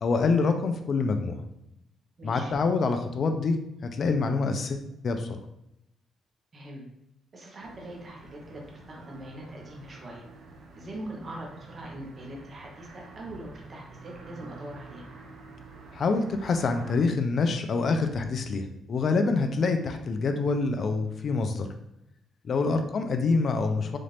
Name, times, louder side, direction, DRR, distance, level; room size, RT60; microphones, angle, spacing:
voice 1, 0.0-1.4 2.2-3.6 3.9-5.3 15.9-21.7 22.4-24.0, left 4 dB, 50° left, 6 dB, 0.4 m, -26 dB
voice 2, 2.2-2.5 6.5-6.8 7.3-10.3 10.8-15.1 22.6-22.8, right 1 dB, 35° right, -1 dB, 0.9 m, -42 dB
sound 1, 7.6-17.0, right 3 dB, 70° right, 0.7 m, -48 dB
4.1 x 2.5 x 3.3 m, 0.85 s
cardioid pair, 100°, 0 cm